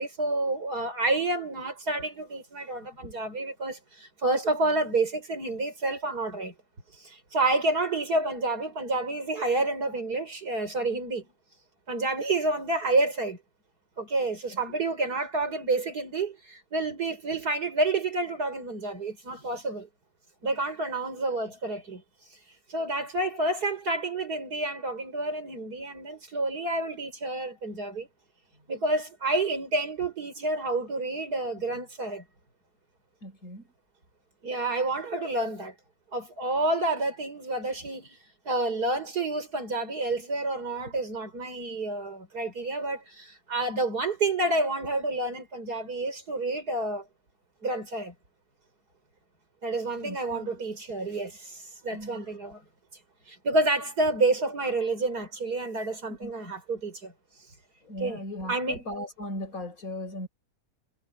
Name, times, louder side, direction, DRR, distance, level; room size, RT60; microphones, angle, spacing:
voice 1, 0.0-6.5 7.0-11.3 11.9-13.4 14.0-19.9 20.4-22.0 22.7-28.1 28.7-32.2 34.4-35.7 36.1-38.2 38.5-47.1 47.6-48.1 49.6-52.6 53.3-57.1 58.0-58.8, right 2 dB, 90° right, 5.6 m, -29 dB
voice 2, 14.5-14.8 33.2-33.7 50.0-50.5 51.9-52.3 56.1-56.3 57.8-60.3, left 1 dB, 65° left, 5.6 m, -38 dB
omnidirectional pair, 1.6 m